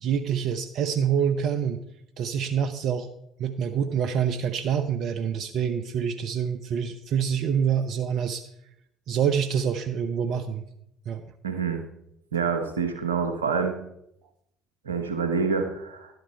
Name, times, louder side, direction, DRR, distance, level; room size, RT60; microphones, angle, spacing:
voice 1, 0.0-1.8 2.2-3.1 3.4-8.4 9.1-10.6 11.1-11.2, right 8 dB, 55° right, 9 dB, 0.7 m, -26 dB
voice 2, 11.4-11.8 12.3-13.7 14.8-16.1, right 5 dB, 85° right, 7 dB, 1.1 m, -27 dB
11.5 x 8.0 x 4.5 m, 0.77 s
figure-of-eight pair, 55°, 0 cm